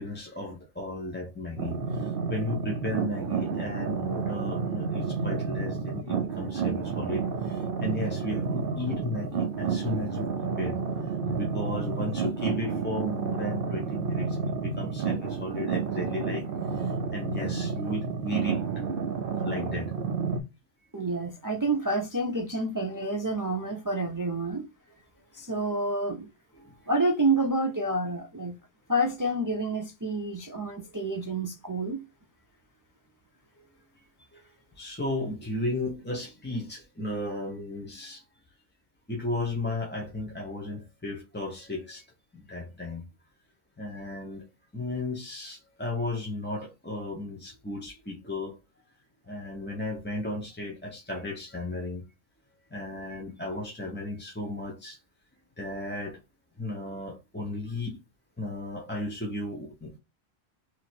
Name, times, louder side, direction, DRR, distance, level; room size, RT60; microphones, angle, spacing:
voice 1, 0.0-1.8 2.3-10.3 10.6-16.4 16.8-18.6 19.4-19.9 26.5-26.7 34.8-38.2 39.1-42.0 42.3-43.0 43.8-44.5 44.7-48.6 49.3-52.0 52.7-55.0 55.6-56.2 56.6-58.0 58.4-60.0, left 2 dB, 10° left, 0.7 m, -35 dB
sound 1, 1.6-20.4, right 5 dB, 60° right, 0.8 m, -30 dB
voice 2, 20.9-24.7 25.3-26.3 26.9-28.6 28.9-32.0, right 2 dB, 30° right, 0.3 m, -28 dB
3.1 x 2.9 x 4.2 m
omnidirectional pair, 1.1 m